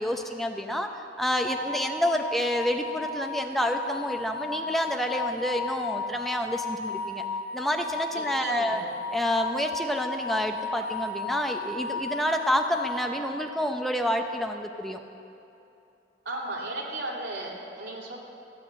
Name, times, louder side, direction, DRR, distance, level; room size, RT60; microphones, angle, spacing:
voice 1, 0.0-7.2 7.5-8.8 9.1-15.0, equal, ahead, 4 dB, 0.7 m, -28 dB
sound 1, 1.4-13.7, left 3 dB, 65° left, 2.3 m, -34 dB
voice 2, 8.1-8.9 16.2-18.2, right 2 dB, 85° right, -3 dB, 3.1 m, -35 dB
15.5 x 10.5 x 7.4 m, 2.8 s
head